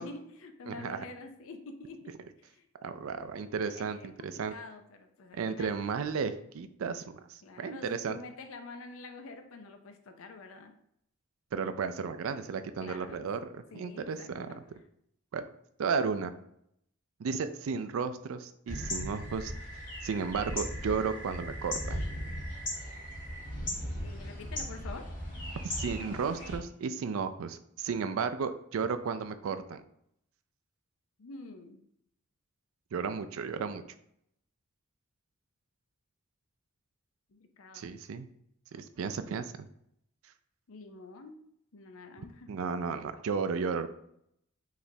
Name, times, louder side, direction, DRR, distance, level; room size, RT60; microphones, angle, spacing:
voice 1, 0.0-2.1 2.4-2.7 3.7-5.8 7.4-10.7 12.8-13.3 13.7-14.6 24.0-25.1 31.2-31.8 37.3-37.9 40.7-41.4 41.7-42.5, left 3 dB, 70° left, 6 dB, 0.5 m, -47 dB
voice 2, 0.7-1.0 2.8-4.5 5.3-8.2 11.5-14.5 15.3-15.4 15.8-16.3 17.2-22.0 25.6-29.8 32.9-33.8 37.7-38.3 38.7-39.7 42.5-43.9, right 5 dB, 70° right, 10 dB, 0.4 m, -34 dB
sound 1, 18.7-26.6, equal, 40° left, 1.4 m, -37 dB
4.8 x 3.2 x 2.7 m, 0.72 s
head